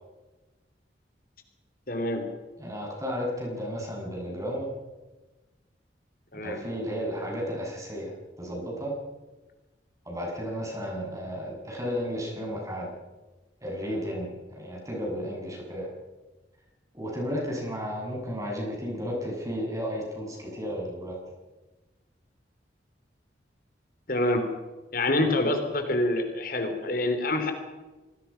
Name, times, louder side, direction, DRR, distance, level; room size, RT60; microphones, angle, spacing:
voice 1, 1.9-2.2 6.3-6.6 24.1-24.4 24.9-27.5, left 1 dB, 50° left, 6 dB, 3.3 m, -26 dB
voice 2, 2.6-4.7 6.3-8.1 8.4-8.9 10.1-12.9 13.6-15.9 16.9-21.1, equal, 20° right, -1 dB, 7.5 m, -33 dB
28.0 x 20.0 x 5.8 m, 1.2 s
head